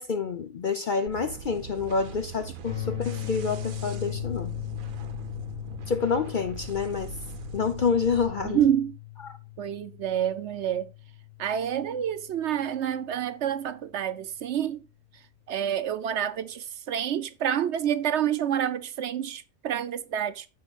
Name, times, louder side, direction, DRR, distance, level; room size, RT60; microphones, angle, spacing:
voice 1, 0.0-4.6 5.9-7.1 7.5-8.6, left 5 dB, 50° left, 0.6 m, -28 dB
sound 1, 1.1-8.7, right 6 dB, 80° right, 1.2 m, -42 dB
sound 2, 2.7-12.6, left 14 dB, 75° left, 2.0 m, -38 dB
voice 2, 8.4-9.0 9.6-10.9 11.4-14.8 15.1-20.5, right 9 dB, 65° right, 0.8 m, -28 dB
15.0 x 5.0 x 2.4 m
omnidirectional pair, 1.4 m